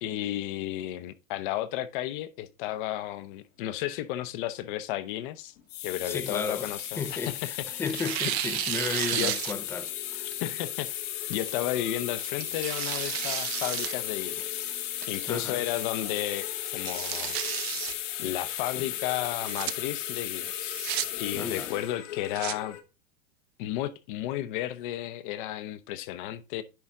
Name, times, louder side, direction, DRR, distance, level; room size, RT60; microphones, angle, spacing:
voice 1, 0.0-5.5 5.8-7.5 9.1-9.3 10.4-10.9 11.3-14.7 15.1-17.4 18.2-20.8 21.2-22.8 23.6-26.6, left 13 dB, 40° left, 0.7 m, -33 dB
sound 1, 5.6-22.8, left 12 dB, 65° left, 1.4 m, -35 dB
voice 2, 6.0-6.7 7.0-10.3 15.3-15.6 21.4-21.7, left 5 dB, 5° left, 0.4 m, -34 dB
Tearing, 6.0-7.4 7.9-9.9 10.3-10.4 11.3-11.6 12.2-14.0 14.3-14.4 15.0-15.4 15.8-15.9 16.2-16.3 16.7-17.9 19.2-19.7 20.5-21.0 22.0-22.5, right 14 dB, 50° right, 0.8 m, -33 dB
10.5 x 4.2 x 3.6 m
supercardioid pair, 150°, 40 cm